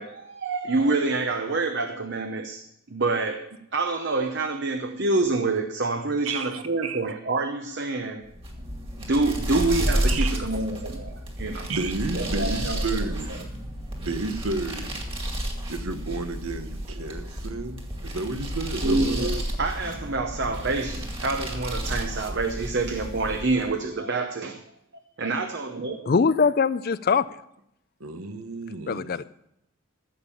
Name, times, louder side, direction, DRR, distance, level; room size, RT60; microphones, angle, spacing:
voice 1, 0.0-8.2 9.0-11.7 12.1-13.1 18.8-24.6 25.2-26.2, right 3 dB, 50° right, 0.8 m, -27 dB
voice 2, 6.2-7.0 10.1-10.4 11.7-13.3 14.0-14.9 15.7-19.4 28.0-29.1, right 3 dB, 75° right, 1.2 m, -32 dB
sound 1, 8.3-23.8, right 1 dB, 25° right, 2.2 m, -31 dB
voice 3, 26.1-27.2 28.9-29.2, left 5 dB, 40° left, 0.4 m, -22 dB
14.5 x 7.3 x 7.1 m
head